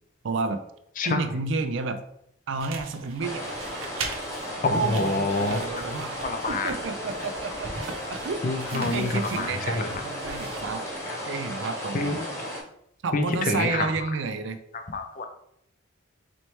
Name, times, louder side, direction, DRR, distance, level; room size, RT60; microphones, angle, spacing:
voice 1, 0.2-0.6 1.1-2.0 2.5-3.4 4.7-6.2 6.5-8.4 8.7-10.8 11.3-12.2 13.0-14.6, right 4 dB, 60° right, 9 dB, 0.4 m, -30 dB
sound 1, 2.6-11.0, right 3 dB, 85° right, 0.7 m, -40 dB
sound 2, 3.2-12.6, equal, 15° left, 0.8 m, -35 dB
voice 2, 4.6-5.8 6.2-6.7 8.4-9.9 11.1-11.2 11.9-12.5 13.1-13.9 14.9-15.3, left 3 dB, 40° left, 6 dB, 0.4 m, -27 dB
4.1 x 3.1 x 3.1 m, 0.74 s
head